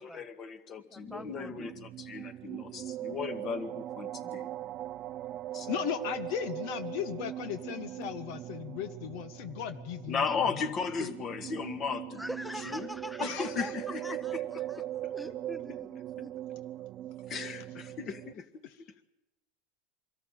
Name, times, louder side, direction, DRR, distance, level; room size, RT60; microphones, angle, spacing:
voice 1, 0.0-4.5 5.5-5.8 10.1-12.2 12.7-12.9 13.2-14.2 17.3-18.6, left 5 dB, 40° left, 9 dB, 2.0 m, -36 dB
voice 2, 0.9-1.7 10.3-10.4 12.1-13.7 14.0-14.4 14.9-15.9 16.2-16.3, equal, 5° left, 12 dB, 0.8 m, -42 dB
sound 1, 1.0-18.3, right 13 dB, 45° right, 0.6 m, -40 dB
voice 3, 5.7-10.2 10.5-10.6 11.0-11.1 13.2-13.7, left 10 dB, 65° left, 12 dB, 1.2 m, -36 dB
24.0 x 14.0 x 9.1 m, 0.96 s
supercardioid pair, 115°, 0 cm